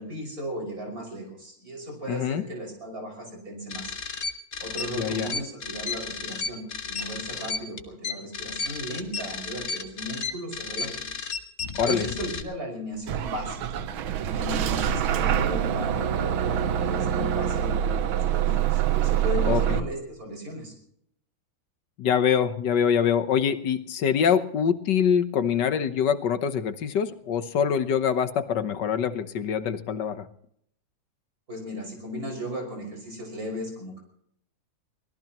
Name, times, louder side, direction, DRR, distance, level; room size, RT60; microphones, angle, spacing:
voice 1, 0.0-3.9 4.6-11.1 11.8-13.8 14.3-17.8 18.1-20.7 31.5-34.0, equal, 45° right, 1 dB, 6.3 m, -36 dB
voice 2, 2.1-2.4 5.0-5.3 11.8-12.1 19.5-19.8 22.0-30.3, left 7 dB, 65° left, 11 dB, 1.5 m, -24 dB
sound 1, 3.7-12.4, left 4 dB, 40° left, 1.4 m, -33 dB
Bus / Engine starting, 13.1-19.8, right 10 dB, 85° right, 1.7 m, -25 dB
24.0 x 18.0 x 3.0 m, 0.69 s
omnidirectional pair, 2.2 m